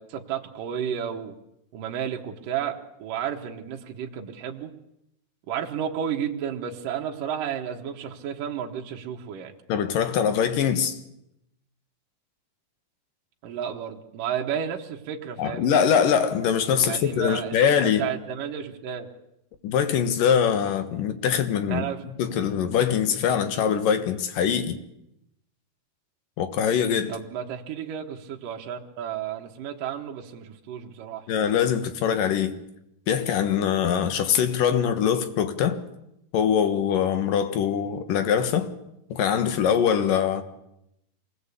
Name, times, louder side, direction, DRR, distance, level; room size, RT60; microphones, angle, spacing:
voice 1, 0.0-1.4 1.7-4.7 5.5-9.5 13.4-15.8 16.8-19.1 21.6-22.0 27.1-31.3, right 8 dB, 65° right, 2.9 m, -32 dB
voice 2, 9.7-11.0 15.4-18.0 19.6-24.8 26.4-27.2 31.3-32.6 33.1-35.8 36.3-38.7 39.1-40.4, left 8 dB, 65° left, 2.9 m, -23 dB
25.5 x 19.5 x 8.4 m
omnidirectional pair, 4.6 m